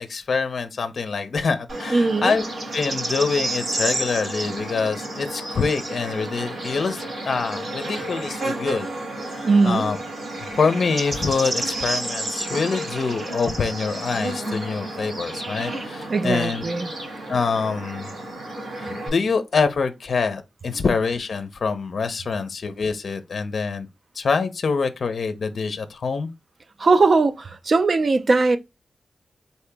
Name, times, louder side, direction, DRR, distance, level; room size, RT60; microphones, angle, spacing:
voice 1, 0.0-2.5 2.7-8.9 9.3-10.0 10.5-16.6 17.3-18.1 18.7-23.9 24.2-26.3, left 4 dB, 60° left, 0.6 m, -25 dB
Bird / Insect, 1.7-19.1, right 1 dB, 65° right, 2.6 m, -31 dB
voice 2, 1.9-2.3 9.4-9.9 16.1-16.9 26.8-28.6, right 3 dB, 45° right, 0.5 m, -19 dB
4.2 x 2.8 x 3.4 m
wide cardioid pair, 140°, 0 cm